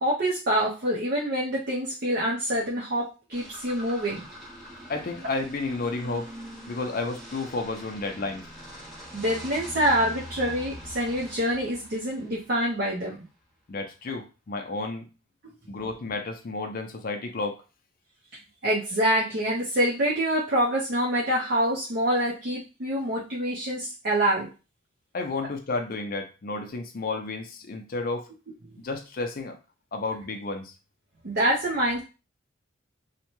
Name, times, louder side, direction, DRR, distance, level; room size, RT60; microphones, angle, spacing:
voice 1, 0.0-4.3 9.1-13.2 18.6-24.5 28.7-28.8 31.2-32.0, equal, 55° right, -5 dB, 0.6 m, -26 dB
sound 1, 3.3-12.8, equal, ahead, 1.1 m, -43 dB
voice 2, 4.9-6.3 6.7-8.5 13.7-15.1 15.7-17.6 25.1-28.3 28.8-29.6 29.9-30.7, left 3 dB, 45° left, 5 dB, 0.5 m, -32 dB
2.7 x 2.1 x 2.9 m, 0.31 s
head